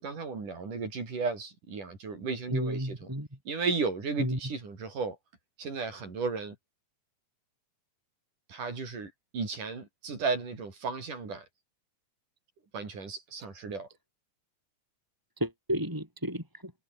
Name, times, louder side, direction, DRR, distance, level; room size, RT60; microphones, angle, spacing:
voice 1, 0.0-3.0 3.5-5.2 5.6-6.6 8.5-11.5 12.7-13.9, right 4 dB, 85° right, 7.5 m, -34 dB
voice 2, 2.5-3.3 4.2-4.4 15.4-16.7, equal, 5° right, 5.0 m, -32 dB
omnidirectional pair, 3.5 m